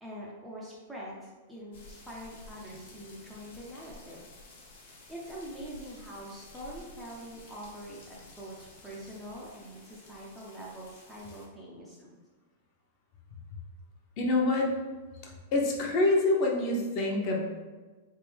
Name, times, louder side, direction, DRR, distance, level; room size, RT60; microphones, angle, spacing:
voice 1, 0.0-4.2 5.1-12.2, equal, 5° right, -6 dB, 0.4 m, -44 dB
sound 1, 1.7-11.5, left 2 dB, 55° left, 1.2 m, -52 dB
voice 2, 14.2-14.7 15.2-17.4, left 2 dB, 30° left, -1 dB, 0.7 m, -26 dB
4.2 x 3.4 x 3.3 m, 1.3 s
supercardioid pair, 180°, 0 cm